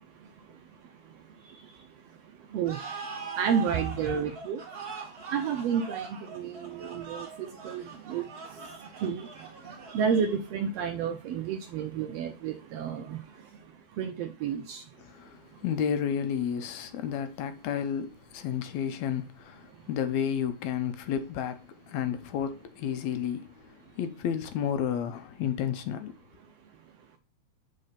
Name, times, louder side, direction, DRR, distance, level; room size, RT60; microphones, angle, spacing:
sound 1, 2.6-10.5, right 6 dB, 35° right, 1.9 m, -42 dB
voice 1, 3.4-4.6 5.3-8.2 9.0-9.3 9.9-13.2 14.0-14.8, right 7 dB, 75° right, 1.6 m, -30 dB
voice 2, 15.0-26.2, left 8 dB, 75° left, 1.9 m, -32 dB
6.6 x 4.1 x 5.6 m
omnidirectional pair, 3.4 m